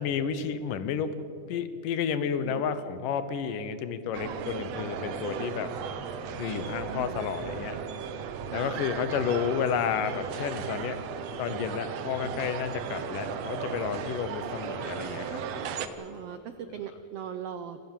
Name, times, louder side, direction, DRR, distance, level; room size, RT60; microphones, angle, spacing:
voice 1, 0.0-5.7 6.4-7.8 8.5-11.0 11.4-15.4, left 7 dB, 80° left, 12 dB, 2.7 m, -31 dB
sound 1, 4.1-15.9, right 6 dB, 65° right, 1.9 m, -36 dB
voice 2, 6.9-7.3 8.5-8.7 16.0-17.8, right 8 dB, 80° right, 10 dB, 1.4 m, -40 dB
sound 2, 9.0-16.3, left 1 dB, 50° left, 8.9 m, -53 dB
27.0 x 16.0 x 7.4 m, 2.7 s
omnidirectional pair, 3.8 m